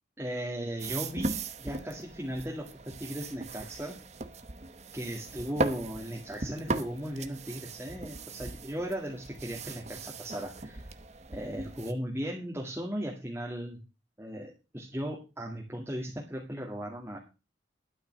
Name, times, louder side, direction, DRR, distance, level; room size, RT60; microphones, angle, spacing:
voice 1, 0.2-4.0 4.9-10.9 11.3-13.8 14.2-17.2, equal, 10° right, -2 dB, 2.0 m, -37 dB
sound 1, 0.8-11.9, right 3 dB, 35° right, 1.0 m, -38 dB
12.5 x 5.8 x 7.5 m, 0.30 s
head